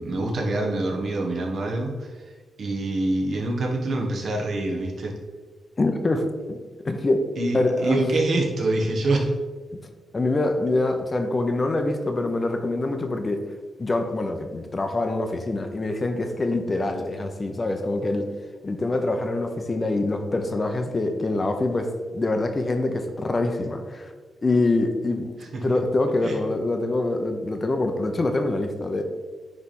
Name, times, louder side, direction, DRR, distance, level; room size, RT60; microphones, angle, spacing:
voice 1, 0.0-2.3 2.6-5.1 7.4-9.3 25.5-25.8 26.2-26.4, right 2 dB, 60° right, 0 dB, 1.5 m, -25 dB
voice 2, 5.8-6.6 6.8-7.2 7.5-8.0 8.3-8.4 10.1-13.4 13.8-18.3 18.6-24.1 24.4-25.3 25.6-29.0, left 2 dB, 30° left, 6 dB, 0.8 m, -25 dB
9.6 x 3.5 x 4.3 m, 1.4 s
cardioid pair, 100°, 0 cm